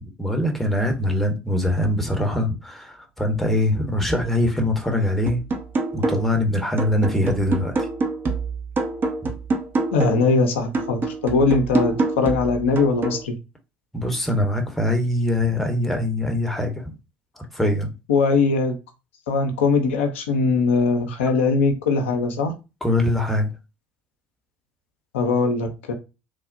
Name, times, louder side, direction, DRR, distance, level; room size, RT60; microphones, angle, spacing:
voice 1, 0.0-5.4 5.9-7.7 9.2-9.3 13.9-16.9 17.4-17.9 22.8-23.5, left 1 dB, 5° left, 0.8 m, -23 dB
sound 1, 5.3-6.4 6.8-10.3 10.7-13.3, right 3 dB, 30° right, 0.6 m, -26 dB
voice 2, 9.9-13.4 18.1-18.8 19.3-22.5 25.1-25.9, left 4 dB, 70° left, 0.5 m, -21 dB
3.1 x 2.0 x 2.5 m
figure-of-eight pair, 60°, 7 cm